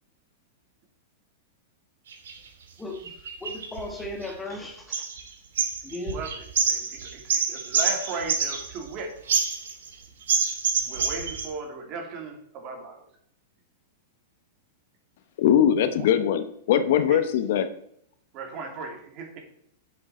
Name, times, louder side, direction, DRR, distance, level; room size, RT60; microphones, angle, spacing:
sound 1, 2.1-2.4 3.1-4.6 4.9-5.3 5.6-8.9 9.3-9.9 10.3-11.5, right 5 dB, 90° right, 2.6 m, -26 dB
voice 1, 2.8-3.1 3.4-5.1 5.8-6.2, left 2 dB, 10° left, 3 dB, 1.6 m, -36 dB
voice 2, 6.1-9.1 10.8-13.0 16.0-16.1 17.1-17.2 18.3-19.4, right 4 dB, 35° right, 2 dB, 3.0 m, -36 dB
voice 3, 15.4-17.7, left 9 dB, 65° left, 10 dB, 1.0 m, -21 dB
10.5 x 7.4 x 4.4 m, 0.69 s
supercardioid pair, 145°, 0 cm